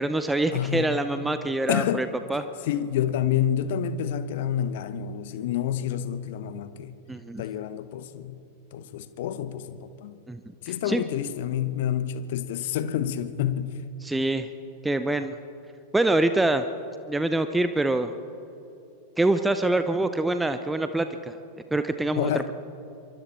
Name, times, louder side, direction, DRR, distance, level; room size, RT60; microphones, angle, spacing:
voice 1, 0.0-2.4 7.1-7.4 10.3-10.4 10.9-11.0 14.0-14.5 14.8-15.4 15.9-16.6 17.1-18.1 19.2-21.4 21.7-22.5, right 2 dB, 5° right, 9 dB, 0.7 m, -25 dB
voice 2, 0.5-1.1 1.7-2.1 2.6-7.0 7.4-8.4 8.7-10.2 10.6-13.9 22.1-22.5, left 10 dB, 55° left, 13 dB, 1.1 m, -28 dB
25.5 x 23.5 x 4.3 m, 2.9 s
figure-of-eight pair, 90°, 0 cm